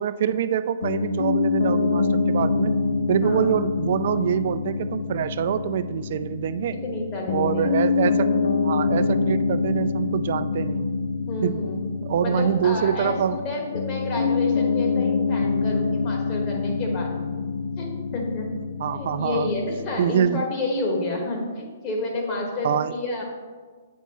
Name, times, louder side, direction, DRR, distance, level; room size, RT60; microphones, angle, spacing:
voice 1, 0.0-2.7 3.1-6.8 7.3-8.3 8.6-10.9 11.4-11.6 12.0-13.4 18.8-19.5 20.0-20.4 22.6-22.9, right 9 dB, 55° right, 12 dB, 0.3 m, -25 dB
Piano, 0.8-20.2, left 4 dB, 85° left, 0.4 m, -26 dB
voice 2, 3.2-3.5 6.8-7.7 8.3-8.4 11.3-11.8 12.2-17.3 17.8-18.5 18.9-23.2, left 2 dB, 30° left, -1 dB, 1.4 m, -30 dB
8.2 x 4.5 x 3.0 m, 1.5 s
hypercardioid pair, 145°, 0 cm